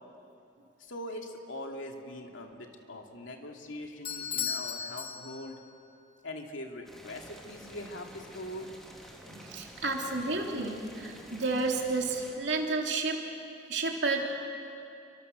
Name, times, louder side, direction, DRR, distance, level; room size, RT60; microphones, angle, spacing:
voice 1, 0.8-5.6 6.2-8.7, left 1 dB, 75° left, 2 dB, 2.6 m, -42 dB
Bell / Doorbell, 4.0-5.8, left 7 dB, 30° left, 1.8 m, -36 dB
Boiling, 6.8-12.4, equal, ahead, 2.7 m, -50 dB
voice 2, 9.3-13.2 13.7-14.3, right 3 dB, 60° right, 0 dB, 3.2 m, -31 dB
29.0 x 24.5 x 6.7 m, 2.6 s
head